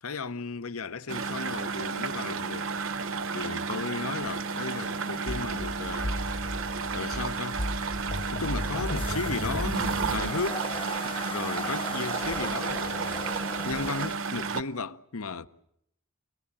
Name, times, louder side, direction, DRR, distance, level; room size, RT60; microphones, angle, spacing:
voice 1, 0.0-2.7 3.3-6.4 6.9-7.6 8.3-10.7 11.0-13.2 13.6-15.5, left 4 dB, 70° left, 0.9 m, -35 dB
sound 1, 1.1-14.6, right 5 dB, 60° right, 1.0 m, -32 dB
sound 2, 4.2-14.1, left 3 dB, 25° left, 1.0 m, -42 dB
sound 3, 5.3-10.3, equal, 45° left, 1.3 m, -34 dB
28.5 x 19.5 x 8.9 m
head